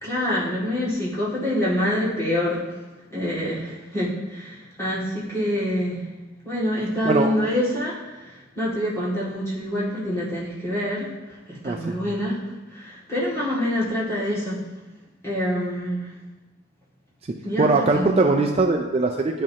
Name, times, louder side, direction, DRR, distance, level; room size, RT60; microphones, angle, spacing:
voice 1, 0.0-2.8 3.1-6.1 6.4-12.4 12.7-14.6 15.2-16.1 17.4-18.2, equal, 15° left, -8 dB, 2.1 m, -26 dB
voice 2, 11.6-12.0 17.6-19.4, right 3 dB, 30° right, 2 dB, 0.4 m, -21 dB
10.5 x 5.2 x 2.8 m, 1.1 s
head